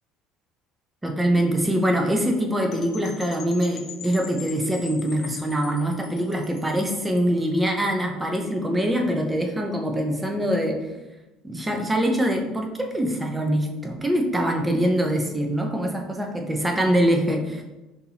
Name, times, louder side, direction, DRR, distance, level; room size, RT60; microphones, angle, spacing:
voice 1, 1.0-10.9 11.4-17.6, equal, 10° right, 2 dB, 0.7 m, -24 dB
Percussion / Wind chime, 2.7-7.4, left 7 dB, 55° left, 0.5 m, -42 dB
5.8 x 2.8 x 2.9 m, 1.0 s
supercardioid pair, 105°, 0 cm